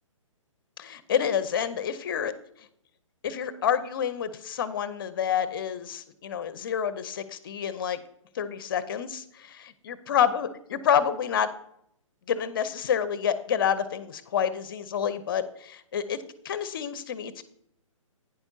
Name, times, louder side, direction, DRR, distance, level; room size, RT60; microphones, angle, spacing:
voice 1, 0.8-2.3 3.2-8.0 8.3-11.5 12.3-17.4, left 8 dB, 40° left, 14 dB, 0.7 m, -28 dB
11.5 x 9.6 x 2.7 m, 0.71 s
figure-of-eight pair, 130°, 17 cm